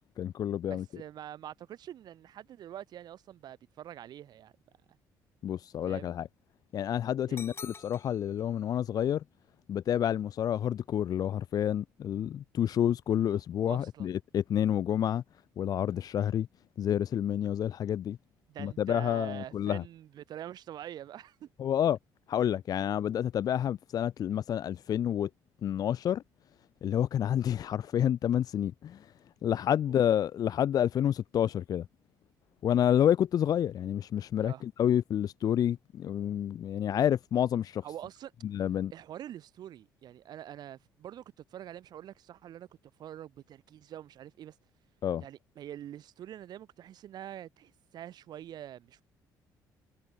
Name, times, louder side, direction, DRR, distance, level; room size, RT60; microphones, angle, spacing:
voice 1, 0.2-0.8 5.4-6.3 6.7-9.2 9.7-15.2 15.6-16.5 16.8-18.2 18.6-19.8 21.6-22.0 22.3-25.3 25.6-26.2 26.8-29.1 29.4-31.9 32.6-37.8 38.4-38.9 45.0-45.2, left 10 dB, 55° left, 0.8 m, -29 dB
voice 2, 0.7-4.5 5.8-6.1 7.3-7.4 13.7-14.1 18.5-21.5 29.9-30.0 34.4-34.6 37.8-38.3 38.9-42.7 43.0-44.5 45.2-49.0, right 11 dB, 65° right, 6.6 m, -45 dB
sound 1, 7.4-8.4, left 5 dB, 35° left, 1.7 m, -46 dB
supercardioid pair, 85°, 8 cm